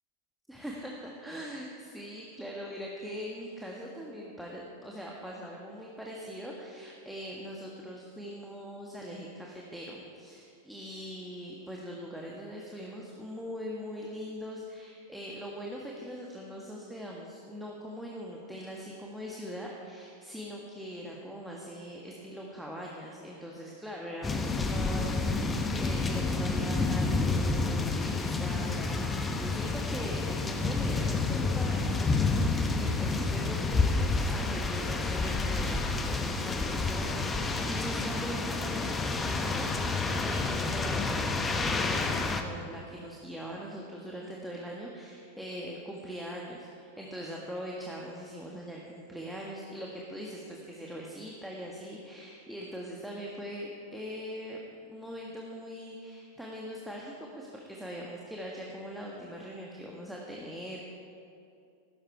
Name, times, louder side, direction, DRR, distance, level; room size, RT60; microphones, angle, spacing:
voice 1, 0.5-54.6 54.9-60.8, equal, ahead, -3 dB, 1.5 m, -41 dB
sound 1, 24.2-42.4, left 3 dB, 15° left, 1.0 m, -29 dB
15.5 x 13.0 x 4.6 m, 2.6 s
figure-of-eight pair, 90°, 0 cm